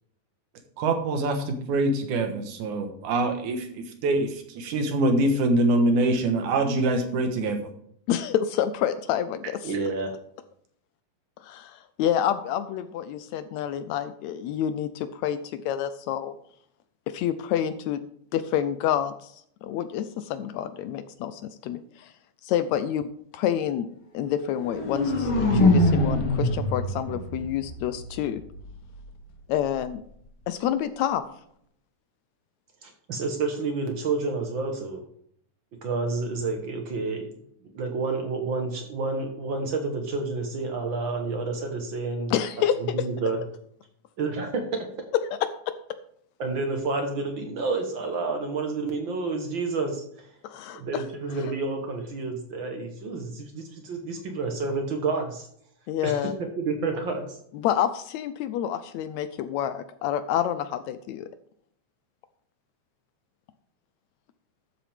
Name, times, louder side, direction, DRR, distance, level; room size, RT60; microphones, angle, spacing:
voice 1, 0.8-7.6, right 2 dB, 80° right, 5 dB, 2.8 m, -24 dB
voice 2, 8.1-9.7 11.4-16.4 17.1-18.0 18.3-19.3 19.6-22.1 22.4-23.9 24.1-28.4 29.5-30.0 30.5-31.2 42.3-42.8 45.3-45.4 50.4-51.0 55.9-56.3 57.5-61.3, left 10 dB, 80° left, 12 dB, 1.8 m, -28 dB
voice 3, 9.6-10.1 32.8-35.0 35.8-37.3 37.7-42.3 42.7-43.4 44.2-44.6 46.4-50.3 50.7-55.5 56.0-56.3 56.6-57.4, right 3 dB, 50° right, 4 dB, 1.5 m, -29 dB
sound 1, 24.5-28.5, left 1 dB, 45° left, 2.9 m, -24 dB
13.0 x 7.6 x 3.5 m, 0.68 s
omnidirectional pair, 3.5 m